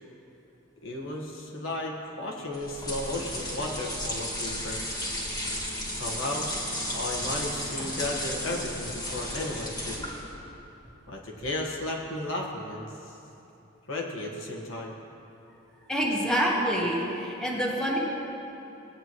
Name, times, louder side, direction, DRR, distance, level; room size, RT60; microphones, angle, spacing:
voice 1, 0.8-4.8 5.9-6.5 6.9-10.0 11.1-13.2 13.9-14.9, left 1 dB, 80° left, -1 dB, 1.5 m, -34 dB
sound 1, 2.5-10.3, left 1 dB, 20° left, 1.7 m, -34 dB
voice 2, 15.9-18.0, equal, 5° left, -4 dB, 1.3 m, -26 dB
18.0 x 8.9 x 3.1 m, 2.9 s
head